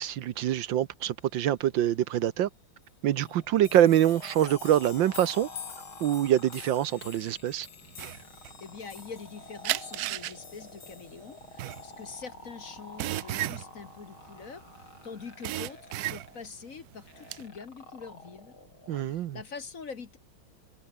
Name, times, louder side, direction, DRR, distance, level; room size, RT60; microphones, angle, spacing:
voice 1, 0.0-2.5 3.0-5.5 6.0-7.7 18.9-19.4, right 11 dB, 70° right, 1.5 m, -25 dB
sound 1, 2.8-2.9 3.2-12.2, left 8 dB, 65° left, 2.4 m, -48 dB
sound 2, 3.2-19.2, left 2 dB, 85° left, 8.7 m, -50 dB
sound 3, 7.9-9.3 9.6-14.9 15.2-16.6 16.9-17.4, right 15 dB, 90° right, 0.8 m, -34 dB
voice 2, 8.6-18.6 19.0-20.2, left 5 dB, 45° left, 1.7 m, -44 dB
omnidirectional pair, 2.2 m